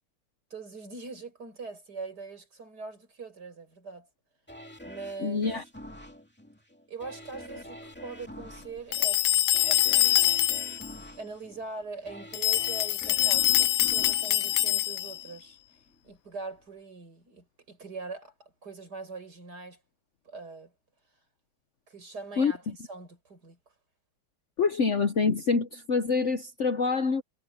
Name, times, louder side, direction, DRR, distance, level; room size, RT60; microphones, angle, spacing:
voice 1, 0.5-4.1 4.8-5.4 6.9-9.2 9.6-10.4 10.6-10.8 11.2-15.6 16.0-19.8 20.2-20.7 21.9-23.6, right 4 dB, 60° right, 6.2 m, -42 dB
sound 1, 4.5-15.4 15.9-16.0, equal, 5° left, 2.3 m, -46 dB
voice 2, 5.2-5.6 22.4-22.7 24.6-27.2, left 4 dB, 50° left, 1.0 m, -26 dB
sound 2, 8.9-10.9 12.3-15.2, left 13 dB, 70° left, 1.3 m, -24 dB
omnidirectional pair, 2.0 m